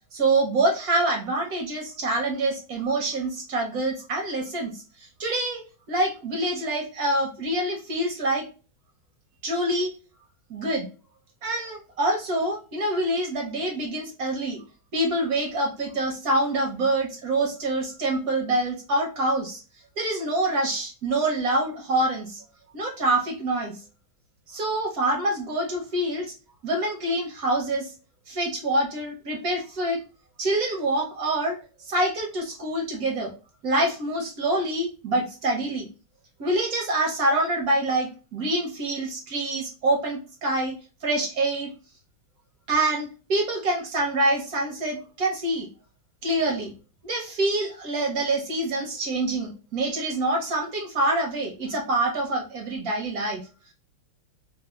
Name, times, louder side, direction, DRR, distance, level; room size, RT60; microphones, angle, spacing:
voice 1, 0.1-4.8 5.2-5.6 5.9-8.5 9.4-9.9 10.5-10.9 11.4-14.6 14.9-19.6 20.0-22.4 22.7-23.7 24.5-26.3 26.6-27.9 28.3-30.0 30.4-31.6 31.8-33.3 33.6-35.9 36.4-41.7 42.7-45.7 46.2-46.7 47.0-53.4, right 1 dB, 60° right, 0 dB, 1.1 m, -26 dB
3.5 x 2.4 x 2.3 m, 0.34 s
omnidirectional pair, 2.3 m